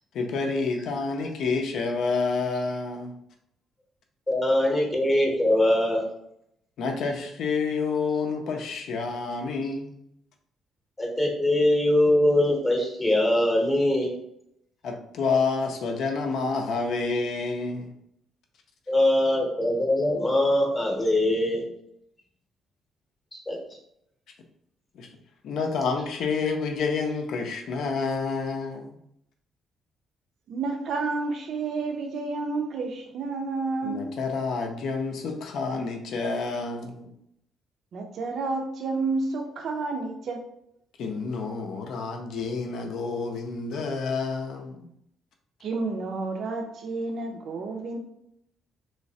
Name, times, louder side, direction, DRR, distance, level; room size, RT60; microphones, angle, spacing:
voice 1, 0.1-3.1 6.8-10.0 14.8-17.9 24.9-25.1 25.4-28.9 33.8-37.1 41.0-44.8, left 4 dB, 65° left, 3 dB, 0.6 m, -29 dB
voice 2, 4.3-6.1 11.0-14.1 18.9-21.6 23.5-23.6, left 1 dB, 15° left, 0 dB, 0.8 m, -22 dB
voice 3, 30.5-34.1 37.9-40.4 45.6-48.0, right 3 dB, 55° right, 2 dB, 0.5 m, -30 dB
3.2 x 3.1 x 2.7 m, 0.75 s
cardioid pair, 150°, 0 cm